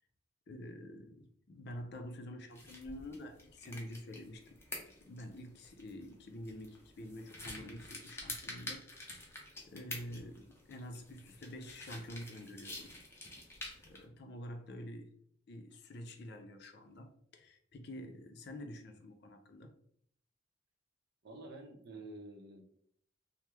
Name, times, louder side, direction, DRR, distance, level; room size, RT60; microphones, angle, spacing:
voice 1, 0.5-4.6 4.9-8.8 9.7-12.9 13.8-15.1 15.5-19.7, left 1 dB, 60° left, 0.5 m, -47 dB
sound 1, 2.5-14.0, left 2 dB, 15° left, 0.6 m, -49 dB
voice 2, 21.2-22.6, right 2 dB, 60° right, 0.6 m, -50 dB
3.0 x 2.0 x 3.4 m
head